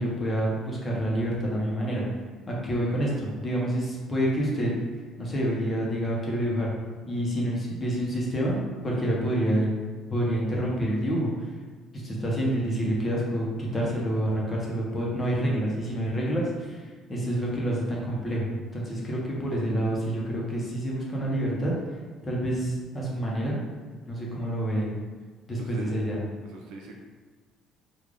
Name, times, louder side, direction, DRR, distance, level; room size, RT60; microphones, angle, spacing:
voice 1, 0.0-2.0 2.5-4.7 5.2-6.7 7.1-9.7 10.1-11.3 11.9-21.7 22.2-23.6 24.1-24.9 25.5-26.2, right 1 dB, 20° left, -4 dB, 0.8 m, -28 dB
voice 2, 25.6-26.0 26.4-26.9, right 3 dB, 80° right, 0 dB, 0.6 m, -41 dB
3.3 x 2.4 x 3.7 m, 1.4 s
cardioid pair, 145°, 0 cm